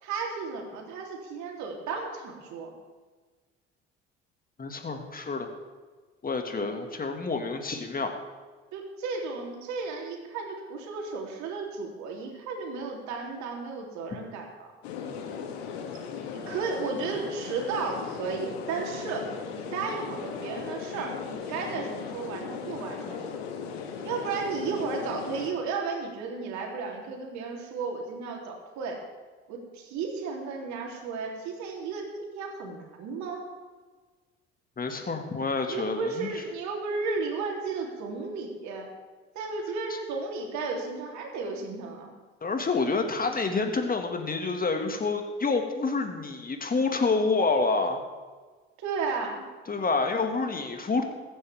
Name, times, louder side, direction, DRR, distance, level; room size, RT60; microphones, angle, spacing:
voice 1, 0.0-2.7 8.7-14.7 16.3-19.3 19.5-23.2 24.0-29.0 29.5-33.5 35.7-38.9 39.4-42.1 48.8-49.5, right 4 dB, 60° right, 0 dB, 3.5 m, -34 dB
voice 2, 4.6-5.5 6.2-8.2 34.8-36.3 39.9-40.0 42.4-48.0 49.7-51.0, left 4 dB, 30° left, 5 dB, 2.1 m, -28 dB
sound 1, 14.8-25.5, left 6 dB, 75° left, 1.9 m, -37 dB
22.5 x 9.8 x 3.6 m, 1.4 s
hypercardioid pair, 55°, 31 cm